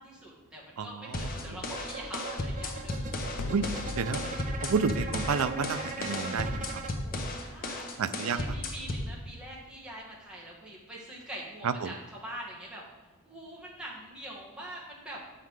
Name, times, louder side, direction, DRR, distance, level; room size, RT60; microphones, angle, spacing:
voice 1, 0.0-3.1 6.9-7.9 8.3-12.8 13.2-15.2, right 1 dB, 5° right, -5 dB, 1.8 m, -44 dB
voice 2, 0.8-1.6 3.5-3.7 4.0-4.2 4.6-6.7 8.0-8.4 11.6-11.9, right 5 dB, 75° right, 12 dB, 0.4 m, -30 dB
sound 1, 1.1-9.1, left 1 dB, 45° left, 1.0 m, -35 dB
sound 2, 1.3-2.6 3.4-6.7 7.8-8.1, left 4 dB, 85° left, 0.5 m, -42 dB
sound 3, 1.7-6.9, right 3 dB, 35° right, 0.8 m, -40 dB
7.4 x 5.8 x 4.8 m, 1.2 s
head